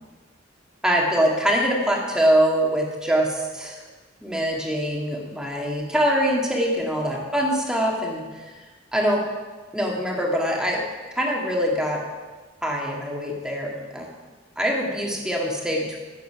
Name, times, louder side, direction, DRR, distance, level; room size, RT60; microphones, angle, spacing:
voice 1, 0.8-3.8 4.2-8.4 8.9-9.2 9.7-10.8 11.1-12.0 12.6-14.1 14.6-16.0, equal, 5° right, -1 dB, 1.8 m, -23 dB
14.5 x 7.2 x 5.7 m, 1.3 s
head